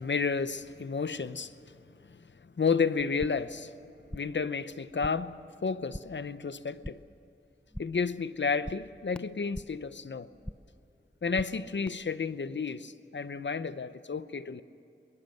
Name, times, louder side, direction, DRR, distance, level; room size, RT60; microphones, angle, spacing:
voice 1, 0.0-1.8 2.0-3.7 4.1-5.3 5.6-7.0 7.8-10.3 11.2-14.6, left 5 dB, 65° left, 0.8 m, -32 dB
sound 1, 3.5-3.6 3.8-4.5 4.7-5.4 5.7-6.3 6.6-7.2 7.5-8.1 8.4-9.9 10.2-10.8 11.1-11.9, left 1 dB, 5° left, 0.5 m, -45 dB
22.5 x 20.5 x 7.9 m
wide cardioid pair, 45°, 20 cm